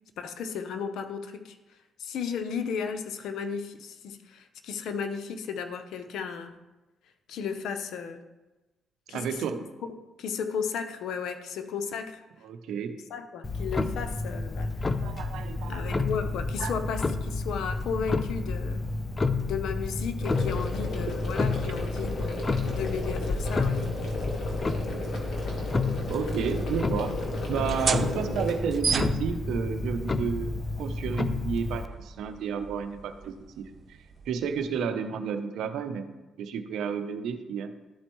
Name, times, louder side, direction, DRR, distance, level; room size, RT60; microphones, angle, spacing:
voice 1, 0.2-1.6 2.0-6.6 7.3-8.2 9.1-9.3 9.9-12.2 13.1-14.7 15.6-18.8 19.4-23.9, left 6 dB, 75° left, 8 dB, 0.6 m, -34 dB
voice 2, 9.1-9.6 12.4-13.0 15.0-16.1 16.6-16.8 26.1-34.0 34.3-36.0 36.4-37.7, right 7 dB, 80° right, 8 dB, 0.6 m, -32 dB
Clock, 13.4-31.9, left 3 dB, 30° left, 0.4 m, -30 dB
sound 1, 20.2-28.5, left 1 dB, 55° left, 1.5 m, -36 dB
sound 2, 27.6-34.8, right 5 dB, 45° right, 0.4 m, -35 dB
12.0 x 4.3 x 3.1 m, 1.1 s
cardioid pair, 90°, 0 cm